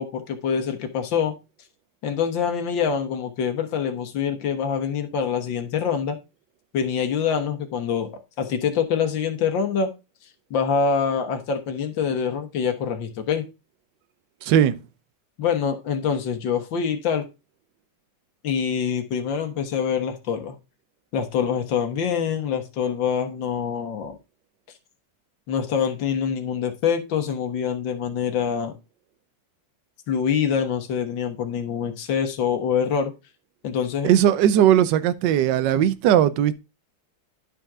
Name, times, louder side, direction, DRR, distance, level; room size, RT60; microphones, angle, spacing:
voice 1, 0.0-1.3 2.0-6.2 6.7-8.1 8.4-9.9 10.5-13.5 15.4-17.3 18.4-20.6 21.1-24.2 25.5-28.7 30.1-33.1 33.6-34.1, left 7 dB, 60° left, 2.0 m, -25 dB
voice 2, 14.4-14.8 34.0-36.5, right 10 dB, 70° right, 1.1 m, -18 dB
11.5 x 4.3 x 3.6 m
omnidirectional pair, 2.4 m